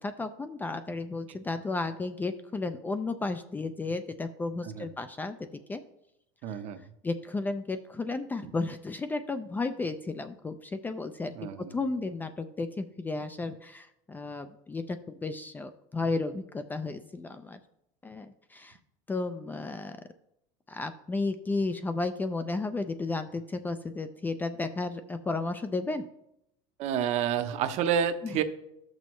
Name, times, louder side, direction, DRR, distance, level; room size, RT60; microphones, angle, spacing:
voice 1, 0.0-5.8 6.5-6.6 7.0-11.3 11.7-17.6 18.0-18.8 19.1-20.0 20.7-26.1 28.2-28.4, left 3 dB, 10° left, 9 dB, 0.4 m, -33 dB
voice 2, 6.4-6.8 11.3-11.7 26.8-28.4, right 8 dB, 50° right, 10 dB, 0.8 m, -29 dB
13.0 x 6.2 x 3.1 m, 0.81 s
supercardioid pair, 140°, 15 cm